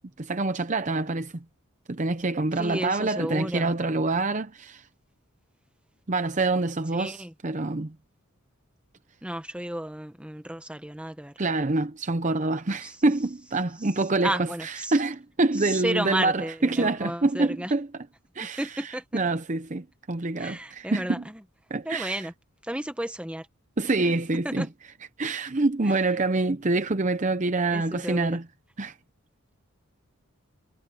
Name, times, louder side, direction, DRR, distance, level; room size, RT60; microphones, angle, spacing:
voice 1, 0.2-1.4 1.9-4.9 6.1-7.9 11.4-17.9 18.4-18.6 19.1-21.2 21.7-22.2 23.8-24.7 25.2-28.4 28.8-28.9, right 2 dB, 35° right, 0.7 m, -26 dB
voice 2, 2.5-3.7 6.9-7.3 9.2-11.4 12.8-13.0 13.8-13.9 14.2-15.0 15.5-17.7 18.4-19.2 20.4-21.4 21.8-22.3 22.6-23.5 24.4-24.7 25.8-26.1 27.7-28.4, right 1 dB, 5° right, 1.4 m, -33 dB
head